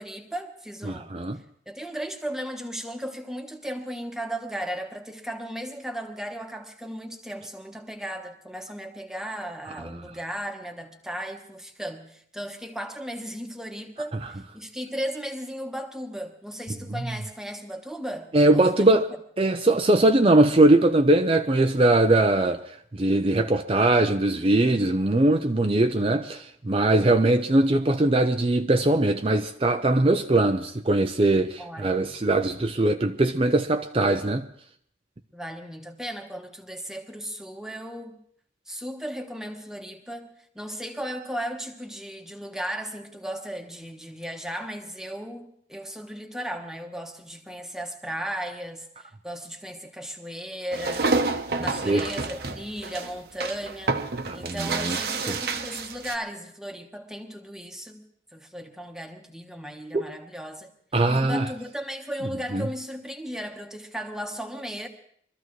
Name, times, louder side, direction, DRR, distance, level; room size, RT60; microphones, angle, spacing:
voice 1, 0.0-1.1 1.7-19.0 31.6-32.2 35.3-38.2 38.7-40.3 40.5-51.1 51.6-54.0 54.3-58.0 58.3-60.7 61.1-64.9, equal, 5° right, 1.2 m, -36 dB
voice 2, 0.9-1.4 18.3-19.1 19.4-22.6 22.9-34.5 51.6-52.1 54.3-55.0 55.3-55.4 59.9-60.1 60.9-61.5 62.5-62.7, right 2 dB, 30° right, 0.5 m, -21 dB
sound 1, 50.7-56.2, right 3 dB, 60° right, 1.0 m, -29 dB
23.5 x 14.0 x 3.2 m
head